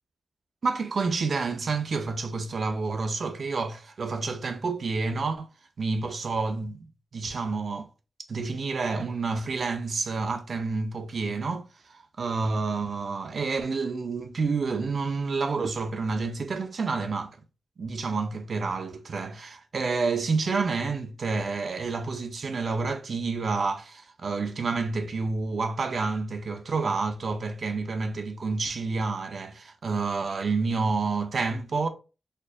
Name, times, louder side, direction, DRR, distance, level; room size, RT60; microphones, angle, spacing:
voice 1, 0.6-5.5 5.8-6.9 7.1-7.9 8.3-17.4 17.8-31.9, right 4 dB, 50° right, 0.5 m, -29 dB
4.2 x 2.5 x 2.4 m
wide cardioid pair, 160°, 0 cm